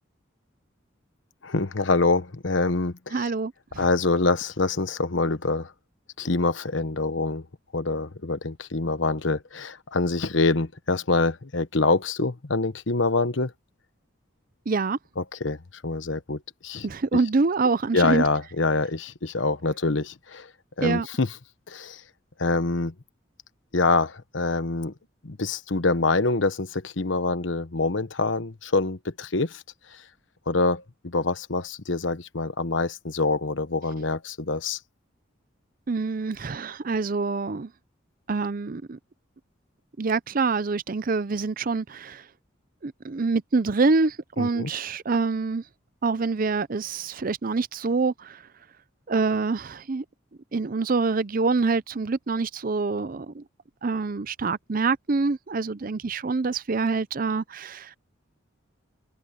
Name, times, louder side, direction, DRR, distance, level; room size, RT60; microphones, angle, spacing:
voice 1, 1.4-3.3 3.8-5.7 6.2-7.5 7.7-13.5 15.2-15.6 15.8-16.9 17.9-20.5 20.8-21.4 21.7-22.0 22.4-22.9 23.7-24.9 25.2-29.6 29.9-30.0 30.5-34.8 44.4-44.7, left 3 dB, 75° left, 1.2 m, -25 dB
voice 2, 3.1-3.5 14.7-15.0 16.8-18.2 20.8-21.1 35.9-37.7 38.3-39.0 40.0-42.2 42.8-45.6 46.0-48.4 49.1-50.0 50.5-53.4 53.8-58.0, right 4 dB, 45° right, 0.6 m, -26 dB
head